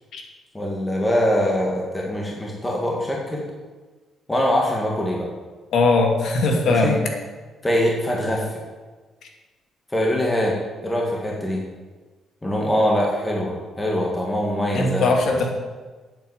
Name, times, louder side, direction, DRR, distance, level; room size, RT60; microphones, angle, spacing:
voice 1, 0.5-3.4 4.3-5.3 6.7-6.9 7.6-8.6 9.9-10.6 10.8-11.6 12.4-15.1, equal, 10° left, -2 dB, 1.9 m, -23 dB
voice 2, 5.7-7.0 14.7-15.5, left 3 dB, 65° left, 2 dB, 2.3 m, -19 dB
9.0 x 7.9 x 8.0 m, 1.3 s
cardioid pair, 135°, 0 cm